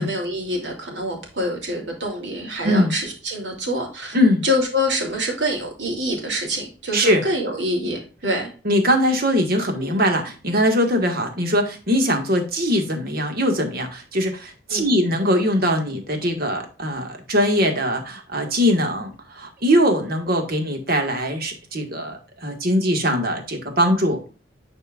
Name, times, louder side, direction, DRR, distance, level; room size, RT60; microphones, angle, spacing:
voice 1, 0.0-4.2 4.4-8.5 9.8-10.0 14.7-15.0, equal, 70° right, 1 dB, 2.9 m, -26 dB
voice 2, 2.6-2.9 4.1-4.4 6.9-7.2 8.7-24.2, equal, 55° right, 4 dB, 1.7 m, -21 dB
11.0 x 4.4 x 2.4 m, 0.35 s
head